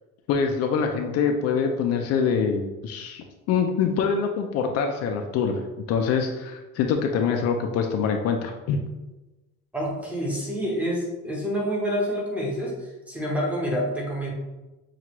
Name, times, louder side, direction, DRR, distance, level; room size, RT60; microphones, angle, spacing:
voice 1, 0.3-5.5 5.9-8.8, left 6 dB, 55° left, 4 dB, 0.4 m, -24 dB
voice 2, 9.7-14.3, equal, 5° right, -3 dB, 0.8 m, -28 dB
5.9 x 2.4 x 2.9 m, 1.1 s
cardioid pair, 165°, 30 cm